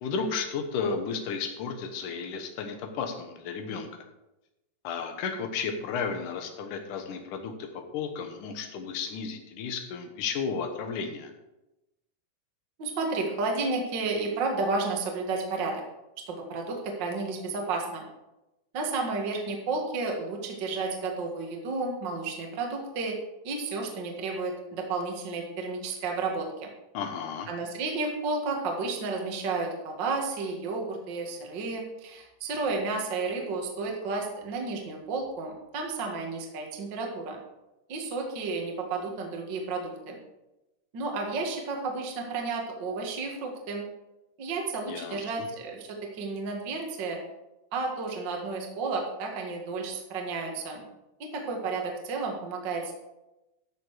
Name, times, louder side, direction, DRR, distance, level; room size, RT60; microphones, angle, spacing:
voice 1, 0.0-4.0 4.8-7.7 7.9-11.3 26.9-27.5 44.9-45.2, left 5 dB, 75° left, 5 dB, 1.9 m, -33 dB
voice 2, 12.8-15.8 16.3-18.0 18.7-23.2 23.4-26.7 27.5-37.4 37.9-40.2 40.9-43.8 44.4-47.2 47.7-50.9 51.2-52.9, right 3 dB, 75° right, 1 dB, 1.0 m, -32 dB
12.5 x 6.9 x 4.9 m, 0.95 s
omnidirectional pair, 5.3 m